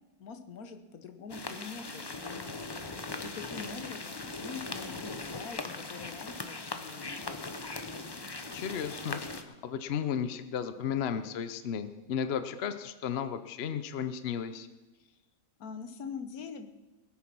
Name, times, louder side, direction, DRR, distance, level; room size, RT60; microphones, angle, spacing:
voice 1, 0.2-2.8 3.2-7.6 15.0-15.2 15.6-16.7, left 5 dB, 70° left, 7 dB, 1.5 m, -44 dB
sound 1, 1.3-9.4, left 3 dB, 25° left, 0.5 m, -39 dB
voice 2, 8.5-14.7, left 8 dB, 50° left, 10 dB, 0.8 m, -34 dB
19.0 x 8.5 x 6.1 m, 1.1 s
omnidirectional pair, 1.6 m